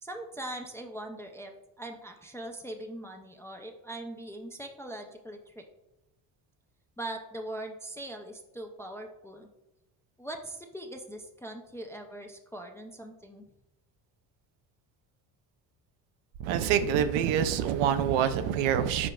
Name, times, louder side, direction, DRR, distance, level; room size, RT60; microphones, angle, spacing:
voice 1, 0.0-1.5 1.8-5.6 7.0-9.5 10.2-13.5, right 1 dB, 5° left, 3 dB, 0.3 m, -41 dB
voice 2, 16.4-19.1, right 9 dB, 70° right, 11 dB, 0.6 m, -26 dB
5.0 x 4.6 x 2.3 m, 0.96 s
supercardioid pair, 80°, 48 cm